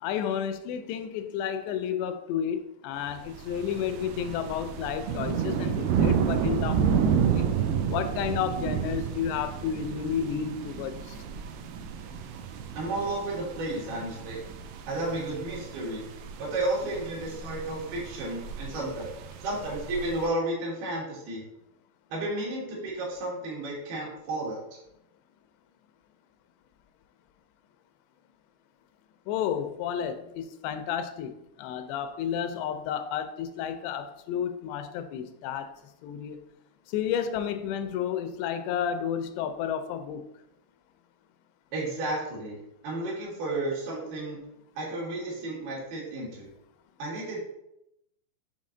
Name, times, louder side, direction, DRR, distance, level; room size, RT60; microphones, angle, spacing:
voice 1, 0.0-7.5 7.9-10.9 29.3-31.3 31.6-35.7 36.0-36.4 36.9-40.2, left 8 dB, 85° left, 9 dB, 2.6 m, -31 dB
sound 1, 3.1-20.3, right 7 dB, 90° right, 2.1 m, -31 dB
voice 2, 12.8-14.4 14.9-16.0 16.4-19.1 19.4-21.4 22.1-24.8 41.7-42.6 42.8-44.4 44.8-46.5 47.0-47.4, right 2 dB, 65° right, -3 dB, 3.3 m, -32 dB
7.4 x 3.7 x 3.8 m, 0.83 s
omnidirectional pair, 4.9 m